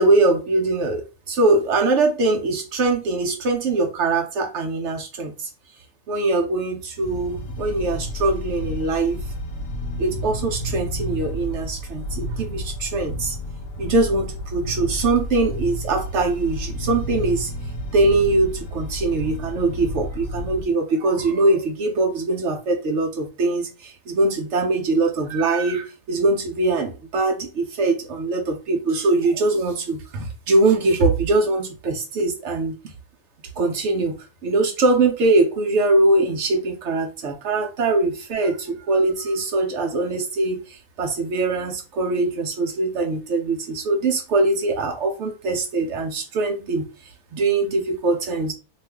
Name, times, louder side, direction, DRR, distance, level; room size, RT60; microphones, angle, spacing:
voice 1, 0.0-5.5 6.1-9.2 10.0-13.4 13.8-17.5 17.9-32.8 33.6-34.2 34.4-48.5, right 2 dB, 70° right, 0.7 m, -22 dB
sound 1, 7.0-20.6, equal, 75° left, 1.0 m, -31 dB
2.5 x 2.4 x 3.2 m
omnidirectional pair, 1.6 m